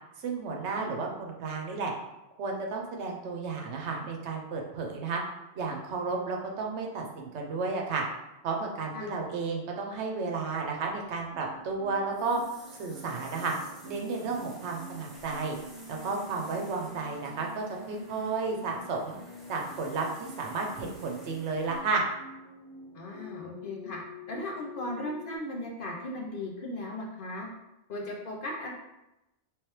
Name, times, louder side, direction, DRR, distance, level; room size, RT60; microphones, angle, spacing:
voice 1, 0.2-1.9 2.4-5.2 5.5-8.0 8.4-12.4 12.8-13.5 13.8-15.6 15.9-19.1 19.5-22.0, right 4 dB, 80° right, 1 dB, 1.0 m, -32 dB
sound 1, 10.8-21.8, equal, ahead, 0.7 m, -52 dB
sound 2, 11.3-25.4, left 2 dB, 25° right, 1.0 m, -47 dB
voice 2, 22.9-24.0 24.3-27.5 27.9-28.7, left 1 dB, 55° left, -1 dB, 0.8 m, -37 dB
3.4 x 3.2 x 3.1 m, 0.94 s
omnidirectional pair, 1.2 m